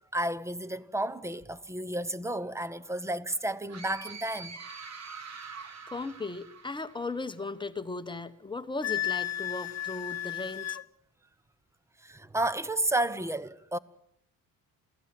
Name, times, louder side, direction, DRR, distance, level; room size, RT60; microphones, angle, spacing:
voice 1, 0.1-4.6 12.0-13.8, right 1 dB, 10° right, 0.9 m, -32 dB
sound 1, 3.7-7.4, right 5 dB, 45° right, 2.5 m, -45 dB
voice 2, 5.9-10.8, left 3 dB, 15° left, 1.1 m, -37 dB
Wind instrument woodwind instrument, 8.8-10.8, left 13 dB, 45° left, 0.9 m, -33 dB
28.0 x 16.5 x 7.7 m
cardioid pair, 135°, 36 cm